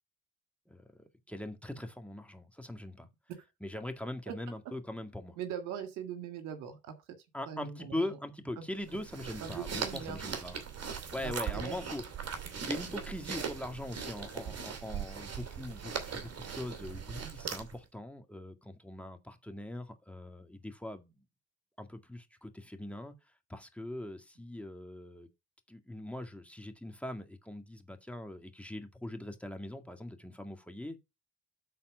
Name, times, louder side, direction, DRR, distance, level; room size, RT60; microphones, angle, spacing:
voice 1, 0.7-3.1 3.6-5.4 7.3-10.6 10.9-21.3 21.8-23.1 23.5-25.3 25.7-31.0, left 1 dB, 5° left, 2.0 m, -41 dB
voice 2, 5.4-6.9 7.5-8.2 8.6-8.7 9.4-10.2 11.2-11.8, right 8 dB, 75° right, 1.9 m, -41 dB
sound 1, 8.8-17.8, right 6 dB, 50° right, 2.5 m, -39 dB
12.5 x 4.2 x 4.9 m
hypercardioid pair, 45°, 32 cm